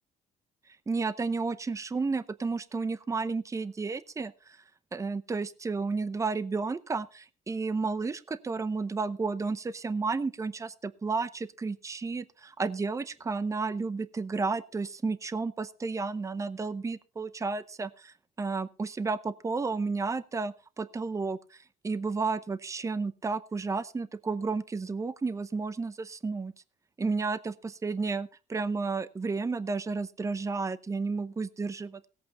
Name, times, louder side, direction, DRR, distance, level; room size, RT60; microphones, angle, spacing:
voice 1, 0.9-4.6 4.9-26.5 27.0-27.5 27.8-32.1, right 4 dB, 20° right, 16 dB, 0.7 m, -32 dB
17.5 x 8.4 x 4.1 m, 0.35 s
cardioid pair, 110°, 17 cm